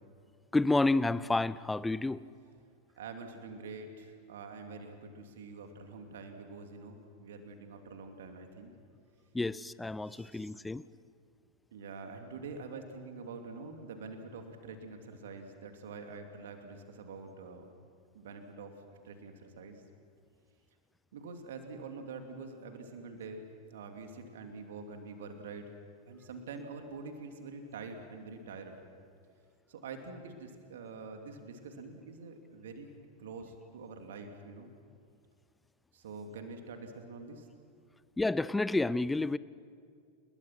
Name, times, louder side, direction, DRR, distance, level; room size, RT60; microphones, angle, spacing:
voice 1, 0.5-2.2 9.3-10.8 38.2-39.4, left 2 dB, 10° left, 18 dB, 0.6 m, -29 dB
voice 2, 3.0-8.7 10.1-10.5 11.7-17.7 18.1-18.7 19.0-19.8 21.1-25.6 26.1-28.8 29.7-32.9 33.2-34.7 35.9-37.5, right 4 dB, 60° right, 5 dB, 2.9 m, -46 dB
30.0 x 21.0 x 6.1 m, 2.3 s
figure-of-eight pair, 90°, 0 cm